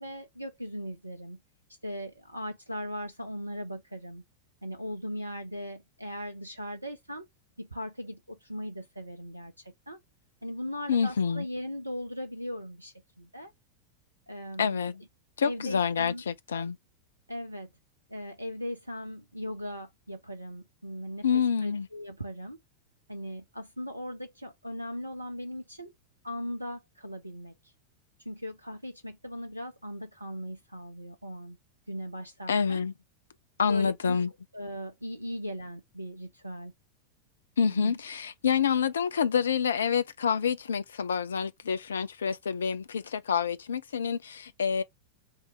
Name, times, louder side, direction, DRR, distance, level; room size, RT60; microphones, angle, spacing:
voice 1, 0.0-1.4 1.8-4.2 4.6-7.3 7.6-10.0 10.4-13.5 14.3-14.8 15.4-16.2 17.3-17.7 18.1-22.6 23.1-25.9 26.2-27.7 28.3-31.6 31.9-32.8 33.6-34.2 34.5-36.7 37.6-38.0, equal, 85° right, 0.5 m, -38 dB
voice 2, 10.9-11.5 14.6-15.0 15.4-16.8 21.2-21.9 32.5-32.9 33.6-34.3 37.6-44.8, left 6 dB, 70° left, 0.4 m, -27 dB
3.6 x 2.7 x 3.2 m
figure-of-eight pair, 90°, 0 cm